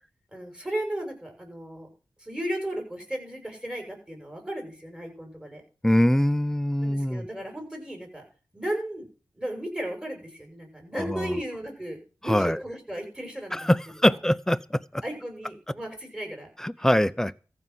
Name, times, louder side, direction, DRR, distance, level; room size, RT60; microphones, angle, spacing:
voice 1, 0.3-1.9 2.2-5.6 6.8-8.2 8.5-9.1 9.3-13.7 14.0-14.1 15.0-16.5 16.8-16.9, right 1 dB, 10° right, 6.9 m, -35 dB
voice 2, 5.8-7.3 10.9-11.4 12.3-12.6 13.5-15.0 16.6-17.3, left 1 dB, 5° left, 0.7 m, -23 dB
14.5 x 5.8 x 7.8 m
cardioid pair, 40°, 8 cm